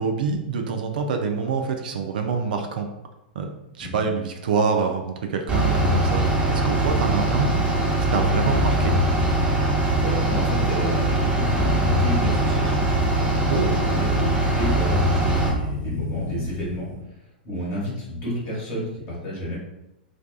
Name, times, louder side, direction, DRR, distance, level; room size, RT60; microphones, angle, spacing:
voice 1, 0.0-2.9 3.4-3.5 3.8-7.5 8.1-8.9 13.5-13.7, right 5 dB, 60° right, 4 dB, 0.3 m, -26 dB
Bus / Idling, 5.5-15.5, right 1 dB, 25° right, 0.9 m, -21 dB
sound 1, 8.1-17.0, left 2 dB, 50° left, 0.7 m, -35 dB
voice 2, 10.0-12.9 13.4-16.9 17.4-19.6, equal, 35° left, -6 dB, 1.1 m, -30 dB
2.5 x 2.2 x 2.2 m, 0.90 s
figure-of-eight pair, 100°, 5 cm